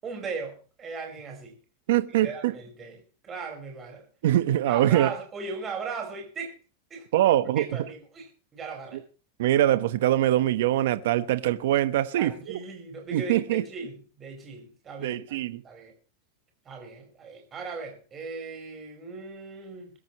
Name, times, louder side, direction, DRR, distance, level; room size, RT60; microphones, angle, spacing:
voice 1, 0.0-1.5 2.1-4.1 4.7-6.6 6.9-7.1 7.6-9.0 12.2-15.4 15.6-15.9 16.7-19.9, right 4 dB, 20° right, 5.3 m, -38 dB
voice 2, 1.9-2.5 4.2-5.1 7.1-7.7 9.4-12.3 13.1-13.6 15.0-15.6, right 13 dB, 65° right, 1.2 m, -23 dB
22.0 x 13.0 x 3.2 m
supercardioid pair, 170°, 0 cm